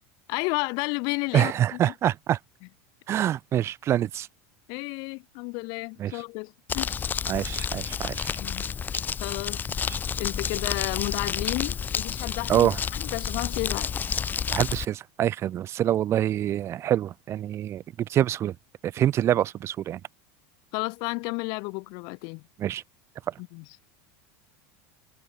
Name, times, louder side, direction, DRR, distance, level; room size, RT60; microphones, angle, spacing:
voice 1, 0.3-1.9 4.7-7.0 8.3-8.7 9.2-9.6 10.2-13.9 20.7-22.4 23.4-23.6, left 31 dB, 60° left, 1.0 m, -32 dB
voice 2, 1.3-2.4 3.1-4.3 6.0-6.1 7.3-8.4 9.9-10.0 12.5-12.8 14.5-18.5 18.8-20.0 22.6-22.8 23.3-23.4, right 11 dB, 35° right, 0.5 m, -25 dB
Crumpling crinkling, 6.7-14.9, left 7 dB, 20° left, 0.7 m, -30 dB
supercardioid pair, 125°, 8 cm